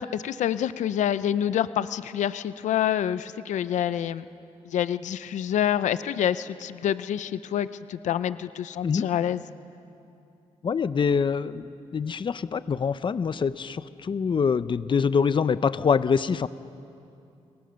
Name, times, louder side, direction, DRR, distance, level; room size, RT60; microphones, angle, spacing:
voice 1, 0.0-4.2 4.6-9.4, left 10 dB, 85° left, 14 dB, 0.6 m, -27 dB
voice 2, 10.6-16.5, left 6 dB, 40° left, 14 dB, 0.7 m, -25 dB
28.5 x 22.5 x 6.4 m, 2.6 s
cardioid pair, 85°, 12 cm